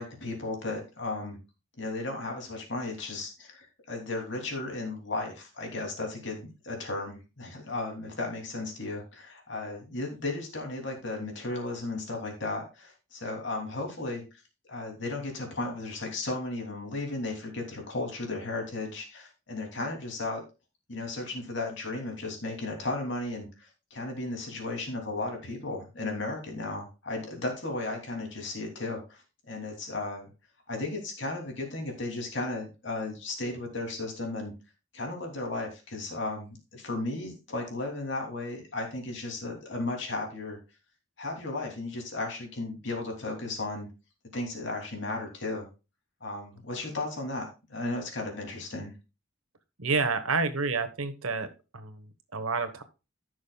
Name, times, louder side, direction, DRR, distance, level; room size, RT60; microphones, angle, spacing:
voice 1, 0.0-1.4 1.8-14.2 14.7-20.4 20.9-30.3 30.7-34.5 34.9-40.6 41.2-43.9 44.3-45.7 46.2-48.9, left 2 dB, 55° left, 2 dB, 2.9 m, -35 dB
voice 2, 49.8-52.8, right 4 dB, 85° right, 10 dB, 1.2 m, -29 dB
15.5 x 6.3 x 2.3 m, 0.29 s
head